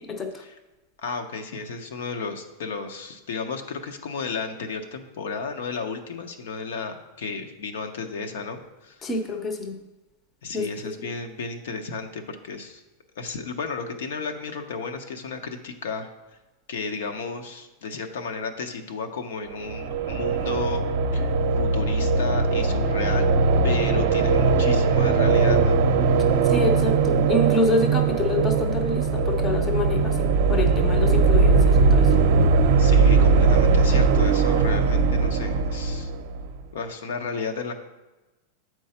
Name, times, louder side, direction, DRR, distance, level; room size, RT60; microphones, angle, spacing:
voice 1, 1.0-9.0 10.4-12.8 13.2-16.1 16.7-20.8 21.1-23.3 23.6-25.8 32.8-36.1 36.7-37.7, left 4 dB, 80° left, 6 dB, 0.8 m, -33 dB
voice 2, 9.0-9.8 10.5-10.7 11.0-11.1 26.5-30.2 30.5-32.1, left 2 dB, 20° left, 6 dB, 0.6 m, -26 dB
sound 1, 19.5-36.6, right 4 dB, 55° right, 0.6 m, -20 dB
7.7 x 4.6 x 4.3 m, 1.1 s
supercardioid pair, 170°, 0 cm